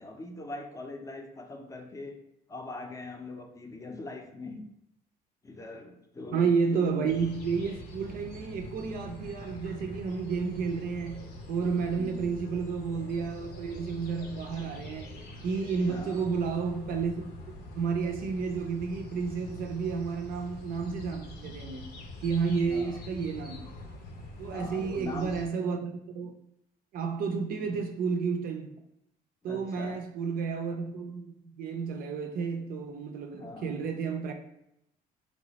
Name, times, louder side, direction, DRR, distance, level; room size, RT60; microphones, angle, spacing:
voice 1, 0.0-2.2 2.5-4.7 5.4-7.1 12.0-12.3 15.9-16.3 22.6-23.0 24.5-25.4 27.6-27.8 29.4-30.0 33.3-33.8, left 2 dB, 20° left, 0.5 m, -42 dB
voice 2, 6.3-15.1 15.4-17.3 17.7-21.9 22.2-23.7 24.4-26.4 26.9-28.7 29.4-34.3, right 5 dB, 60° right, 0.4 m, -31 dB
sound 1, 7.0-25.5, left 1 dB, 70° left, 0.7 m, -44 dB
3.2 x 2.0 x 3.9 m
cardioid pair, 110°, 17 cm